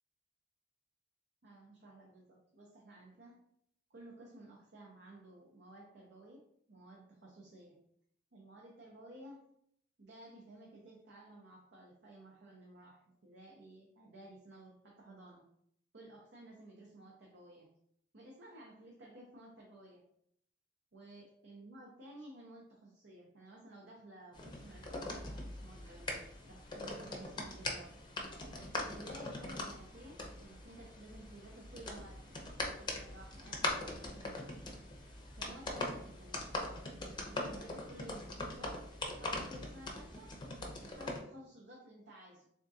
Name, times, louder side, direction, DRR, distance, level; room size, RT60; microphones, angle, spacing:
voice 1, 1.4-3.4 3.9-7.8 8.3-9.4 10.0-15.4 15.9-17.7 18.1-20.0 20.9-28.0 28.6-34.5 35.4-38.9 39.2-40.4 40.8-42.5, right 1 dB, 65° right, -2 dB, 0.7 m, -55 dB
sound 1, 24.3-41.2, left 2 dB, 25° left, 0.6 m, -42 dB
3.6 x 3.5 x 2.7 m, 0.70 s
head